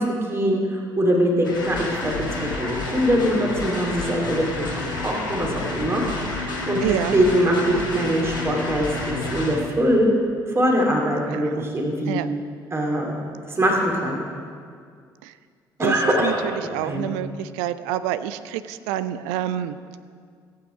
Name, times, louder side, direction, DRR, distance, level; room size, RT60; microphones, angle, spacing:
voice 1, 0.0-4.7 5.0-6.0 6.6-6.8 7.1-10.1 10.5-12.2 12.7-13.2 13.5-14.2 15.8-16.4 16.8-17.1, equal, 25° right, 0 dB, 2.4 m, -22 dB
sound 1, 1.4-9.6, left 2 dB, 85° left, 1.5 m, -29 dB
voice 2, 6.8-7.2 11.3-11.7 12.1-12.3 15.2-15.3 15.8-19.8, right 12 dB, 65° right, 13 dB, 0.5 m, -28 dB
15.0 x 8.5 x 4.9 m, 2.1 s
figure-of-eight pair, 50°, 10 cm